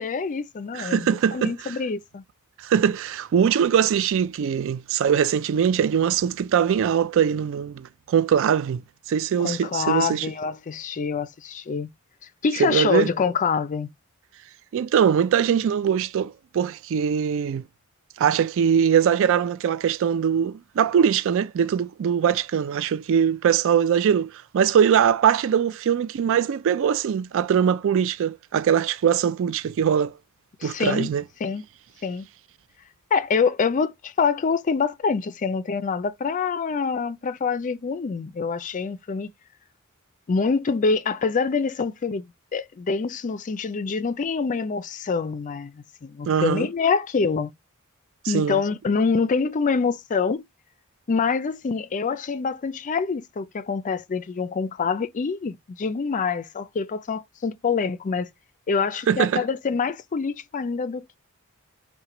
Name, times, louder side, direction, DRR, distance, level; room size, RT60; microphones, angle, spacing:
voice 1, 0.0-2.2 9.4-11.9 12.4-13.9 30.6-31.1 31.4-31.6 32.0-32.3 33.1-39.3 40.3-47.5 48.3-50.4 51.1-58.3 58.7-61.2, left 5 dB, 35° left, 0.4 m, -25 dB
voice 2, 0.7-1.8 2.6-10.3 12.6-13.1 14.7-17.6 18.2-30.1 30.6-31.2 46.3-46.7 48.2-48.6 59.1-59.4, right 8 dB, 65° right, 0.3 m, -22 dB
5.7 x 2.2 x 2.9 m
head